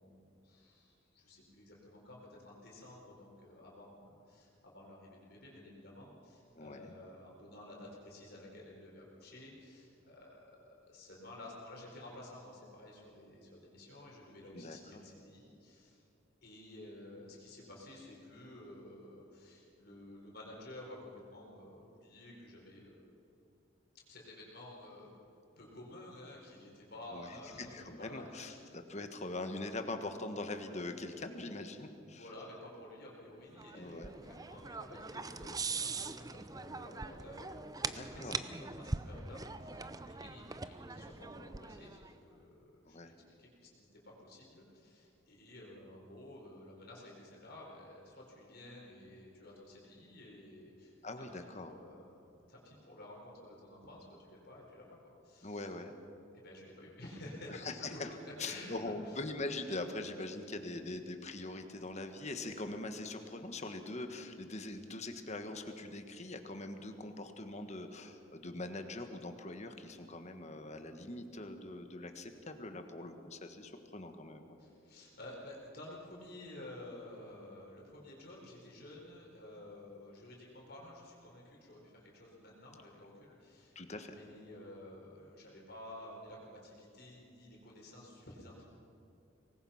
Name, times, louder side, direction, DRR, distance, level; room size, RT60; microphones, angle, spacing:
voice 1, 0.0-16.0 16.4-22.9 24.1-25.2 25.6-28.6 32.1-51.3 51.6-54.8 55.2-55.7 56.3-58.0 58.4-59.2 74.6-88.8, left 1 dB, 50° left, -3 dB, 4.6 m, -52 dB
voice 2, 6.5-6.9 14.5-14.8 27.1-32.2 33.7-34.1 37.9-38.4 42.9-43.1 51.0-51.7 55.4-55.9 57.5-58.1 58.4-74.5 83.7-84.2, left 2 dB, 35° left, 6 dB, 1.5 m, -42 dB
sound 1, 33.6-42.1, right 4 dB, 20° right, 0.6 m, -42 dB
24.5 x 20.0 x 5.8 m, 2.7 s
head